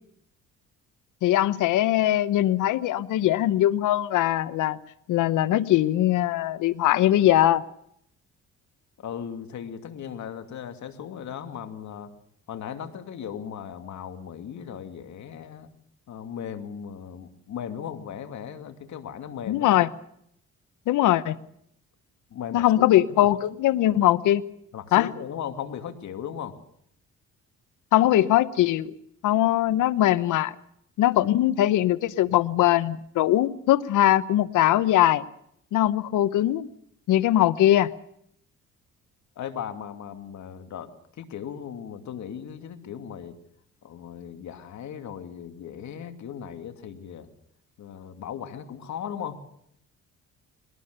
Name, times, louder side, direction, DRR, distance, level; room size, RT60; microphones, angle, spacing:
voice 1, 1.2-4.8 5.1-7.6 19.5-19.9 20.9-21.4 22.5-24.4 24.9-25.1 27.9-28.9 29.2-30.5 31.0-35.2 35.7-36.7 37.1-37.9, left 13 dB, 85° left, 16 dB, 1.0 m, -21 dB
voice 2, 9.0-12.1 12.5-15.7 16.1-19.7 22.3-23.3 24.7-26.6 39.4-43.4 43.8-47.3 47.8-49.4, left 8 dB, 70° left, 7 dB, 2.6 m, -37 dB
22.5 x 19.0 x 6.7 m, 0.70 s
cardioid pair, 90°, 30 cm